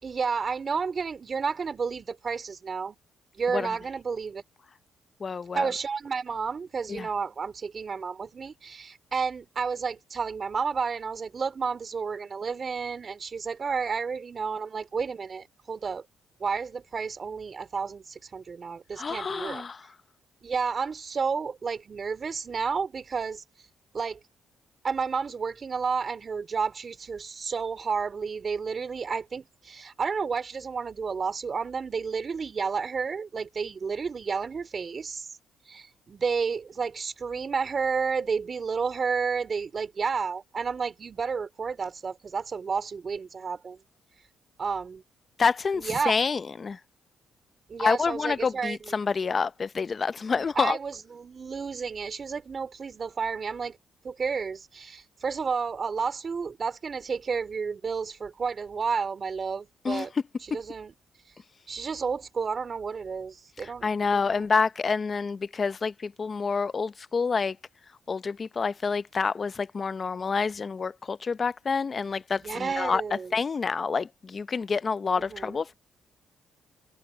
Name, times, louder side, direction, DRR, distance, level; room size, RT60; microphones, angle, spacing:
voice 1, 0.0-3.0 3.4-4.4 5.5-16.0 16.4-19.6 20.4-23.4 23.9-24.2 24.8-35.3 35.7-43.8 44.6-45.0 45.7-46.1 47.7-48.9 50.3-53.8 54.0-60.1 60.5-60.9 61.7-64.5 72.4-73.4 75.1-75.6, right 5 dB, 40° right, 3.9 m, -31 dB
voice 2, 5.2-5.7 6.9-7.1 19.0-19.8 45.4-46.8 47.8-50.8 59.8-60.1 63.6-67.6 68.1-73.0 73.3-75.7, left 5 dB, 35° left, 0.7 m, -28 dB
cardioid pair, 90°, 0 cm